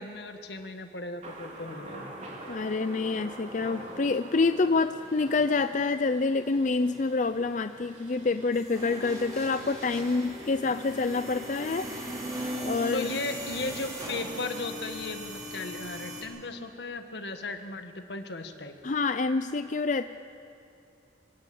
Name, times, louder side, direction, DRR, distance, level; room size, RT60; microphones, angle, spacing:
voice 1, 0.0-2.1 12.9-18.7, left 2 dB, 75° left, 7 dB, 1.7 m, -36 dB
Thunder, 1.2-12.1, right 1 dB, 40° right, 3.9 m, -46 dB
voice 2, 2.5-13.1 18.8-20.1, left 3 dB, 45° left, 10 dB, 0.5 m, -27 dB
sound 1, 8.5-16.2, equal, 20° right, 5.6 m, -38 dB
25.0 x 16.0 x 8.7 m, 2.7 s
head